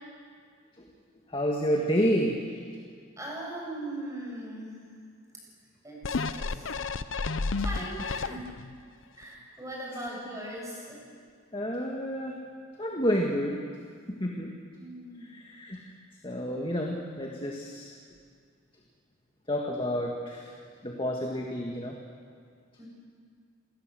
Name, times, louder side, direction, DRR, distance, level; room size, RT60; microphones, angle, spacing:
voice 1, 1.3-2.5 11.5-12.3 12.8-13.6 14.1-14.5 15.3-15.8 16.2-17.9 19.5-20.5 20.8-21.9, equal, 25° left, 0 dB, 1.9 m, -29 dB
voice 2, 3.2-4.8 5.8-6.8 7.6-8.5 9.2-11.0 14.8-15.3 22.8-22.9, right 1 dB, 15° right, -3 dB, 7.4 m, -39 dB
sound 1, 6.0-8.7 9.2-9.3, left 4 dB, 65° left, 0.7 m, -31 dB
28.0 x 18.5 x 7.8 m, 2.1 s
head